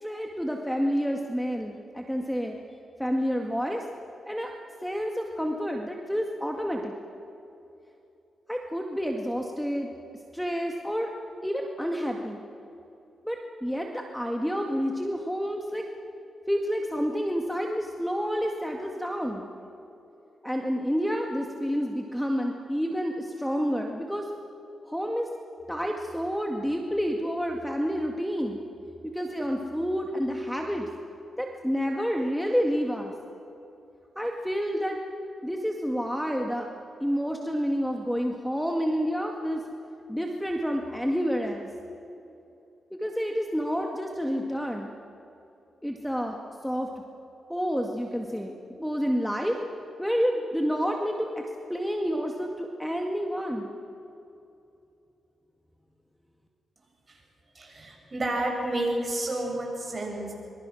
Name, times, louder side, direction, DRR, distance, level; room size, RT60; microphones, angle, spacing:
voice 1, 0.0-2.6 3.0-3.8 4.3-4.5 4.8-6.9 8.5-9.9 10.3-11.1 11.4-12.4 13.2-15.9 16.5-19.5 20.4-24.3 24.9-25.3 25.7-28.6 29.0-30.9 31.4-33.1 34.2-35.0 35.4-36.7 37.0-39.6 40.1-41.7 43.0-44.9 45.8-46.9 47.5-49.6 50.0-51.3 51.7-53.7, equal, ahead, 2 dB, 1.9 m, -29 dB
voice 2, 57.5-60.3, right 1 dB, 30° right, 0 dB, 7.8 m, -30 dB
25.0 x 24.0 x 6.4 m, 2.8 s
cardioid pair, 80°, 0 cm